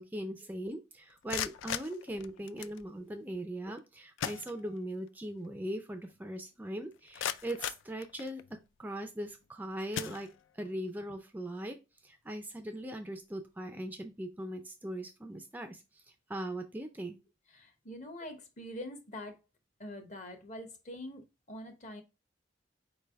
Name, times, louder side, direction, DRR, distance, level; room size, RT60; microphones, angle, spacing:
voice 1, 0.0-8.4 8.8-10.3 10.5-11.8 12.0-16.0 16.3-17.2, right 1 dB, 10° right, 0.3 m, -40 dB
sound 1, 1.1-2.8 3.8-3.9 4.2-5.1 5.4-5.5 6.1-6.2 6.7-8.6 9.3-9.5 9.9-10.8, left 10 dB, 80° left, 0.3 m, -39 dB
voice 2, 17.5-19.4 19.8-22.0, left 1 dB, 40° left, 0.8 m, -44 dB
4.4 x 3.3 x 3.3 m
head